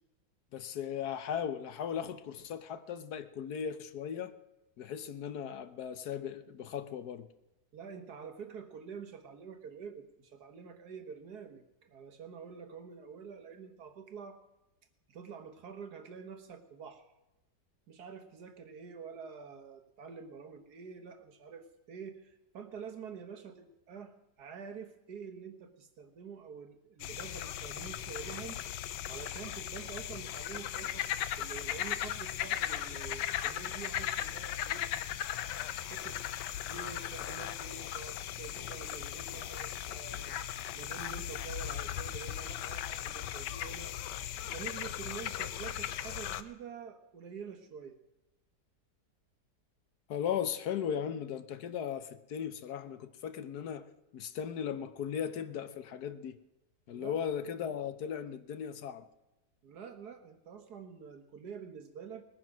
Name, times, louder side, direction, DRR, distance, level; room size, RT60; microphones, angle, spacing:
voice 1, 0.5-4.3 4.8-7.3 50.1-53.9 54.1-56.4 56.9-59.0, left 8 dB, 70° left, 1.3 m, -37 dB
voice 2, 7.7-14.4 15.1-17.1 17.9-28.6 29.1-34.9 35.9-36.2 36.6-40.4 40.7-43.9 44.5-48.0 56.9-57.3 59.6-62.3, right 6 dB, 65° right, 1.8 m, -47 dB
sound 1, 27.0-46.4, left 11 dB, 90° left, 1.3 m, -37 dB
20.0 x 9.8 x 6.2 m
omnidirectional pair, 1.8 m